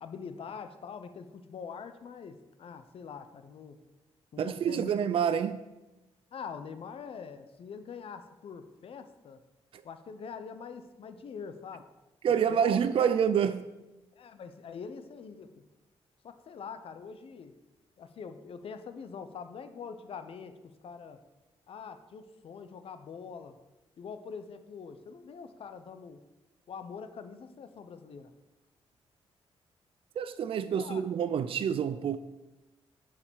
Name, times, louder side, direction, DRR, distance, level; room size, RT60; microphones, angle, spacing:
voice 1, 0.0-3.8 4.3-5.2 6.3-9.4 9.8-11.9 12.5-13.1 14.2-15.5 16.2-17.5 18.0-20.6 20.8-21.2 21.7-23.6 24.0-26.2 26.7-28.3 30.6-31.0, left 6 dB, 60° left, 0.8 m, -44 dB
voice 2, 4.4-5.6 9.7-9.8 12.2-13.7 30.2-32.2, right 8 dB, 55° right, 0.4 m, -27 dB
8.8 x 4.9 x 6.3 m
cardioid pair, 110°, 11 cm